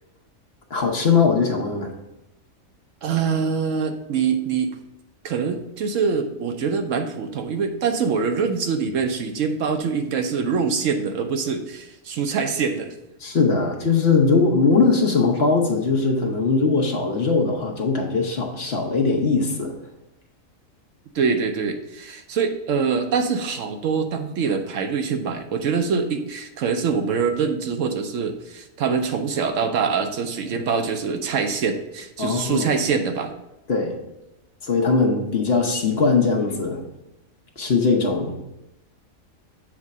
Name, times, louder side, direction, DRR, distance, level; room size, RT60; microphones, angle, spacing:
voice 1, 0.7-1.9 13.2-19.7 32.2-32.7 33.7-34.0 34.6-36.8 37.6-38.5, left 4 dB, 50° left, 1 dB, 1.1 m, -20 dB
voice 2, 3.0-4.7 5.2-12.9 21.1-33.3, right 5 dB, 70° right, 6 dB, 1.0 m, -24 dB
7.4 x 3.6 x 5.3 m, 0.93 s
omnidirectional pair, 1.5 m